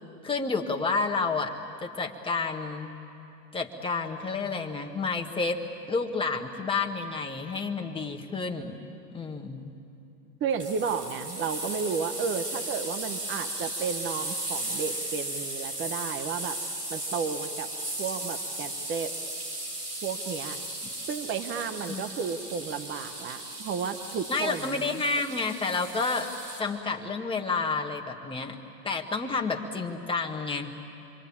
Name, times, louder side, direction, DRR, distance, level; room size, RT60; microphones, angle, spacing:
voice 1, 0.2-1.5 1.8-2.9 3.5-5.6 5.9-8.9 9.1-9.8 21.9-22.0 24.3-26.3 26.6-28.6 28.8-30.9, left 4 dB, 10° left, 3 dB, 1.7 m, -30 dB
voice 2, 10.4-16.6 16.9-17.7 18.0-19.1 20.0-20.6 21.1-25.0, right 6 dB, 25° right, 9 dB, 1.1 m, -32 dB
sound 1, 10.6-26.6, right 1 dB, 75° right, 6.5 m, -36 dB
27.5 x 23.0 x 8.7 m, 2.8 s
hypercardioid pair, 115°, 48 cm